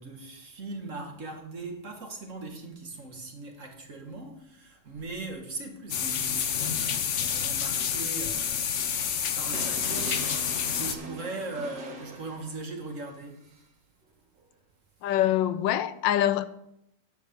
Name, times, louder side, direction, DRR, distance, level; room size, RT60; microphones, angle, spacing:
voice 1, 0.0-13.4, right 2 dB, 45° right, 1.8 m, -40 dB
sound 1, 5.9-10.9, left 8 dB, 55° left, 0.9 m, -29 dB
sound 2, 9.5-12.9 14.4-14.5, right 3 dB, 75° right, 2.2 m, -41 dB
voice 2, 15.0-16.5, left 12 dB, 80° left, 1.3 m, -24 dB
10.5 x 5.2 x 8.0 m
omnidirectional pair, 2.0 m